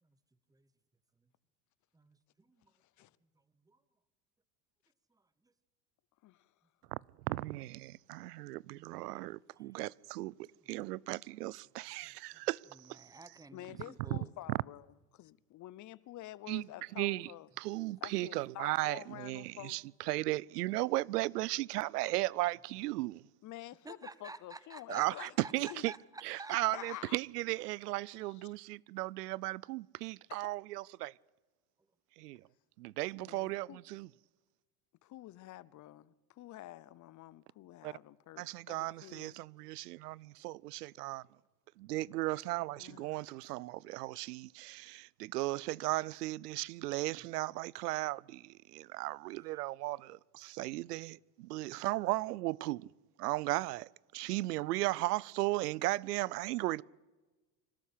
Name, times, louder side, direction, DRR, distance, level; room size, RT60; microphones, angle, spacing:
voice 1, 1.9-2.7 3.6-3.8 5.1-5.5 9.6-9.8 10.8-10.9 12.0-12.4 12.7-14.3 23.8-27.0 42.2-42.3 47.2-47.3 49.4-49.6, right 3 dB, 10° right, 1.1 m, -52 dB
voice 2, 2.8-3.1 6.2-6.5 13.5-14.9 15.1-17.5 18.0-19.8 23.4-25.8 26.7-27.2 28.2-28.5 30.3-30.5 33.2-33.8 35.0-39.4 42.8-43.3, left 15 dB, 40° left, 0.8 m, -49 dB
voice 3, 7.3-10.3 10.7-13.1 14.1-14.2 16.5-16.6 17.0-17.3 17.6-19.8 20.1-23.2 24.9-25.9 26.2-31.1 32.2-32.4 32.8-34.1 37.8-37.9 38.4-41.2 41.8-52.9 53.2-56.8, right 19 dB, 90° right, 0.6 m, -36 dB
25.5 x 12.5 x 8.4 m
supercardioid pair, 95°, 46 cm